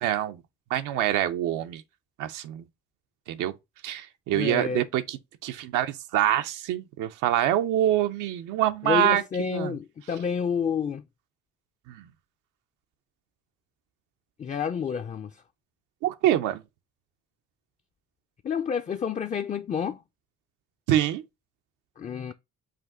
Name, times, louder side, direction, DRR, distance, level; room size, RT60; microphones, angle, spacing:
voice 1, 0.0-0.4 0.7-1.8 2.2-2.7 3.3-3.5 3.8-5.2 5.4-9.7 11.9-12.1 16.0-16.6 20.9-21.2, right 12 dB, 90° right, 0.5 m, -25 dB
voice 2, 4.3-4.9 8.8-11.0 14.4-15.4 18.4-20.0 22.0-22.3, left 7 dB, 25° left, 0.3 m, -29 dB
5.0 x 2.6 x 3.5 m
cardioid pair, 90°, 30 cm